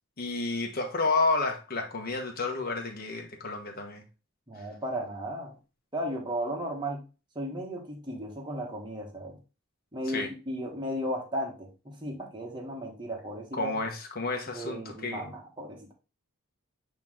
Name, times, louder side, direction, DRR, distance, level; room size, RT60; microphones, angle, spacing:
voice 1, 0.2-4.0 10.1-10.3 13.5-15.3, left 3 dB, 40° left, 1.2 m, -30 dB
voice 2, 4.5-5.5 5.9-7.0 7.3-9.4 9.9-13.7 14.5-15.9, equal, 20° right, 1.4 m, -35 dB
8.3 x 3.1 x 3.6 m
head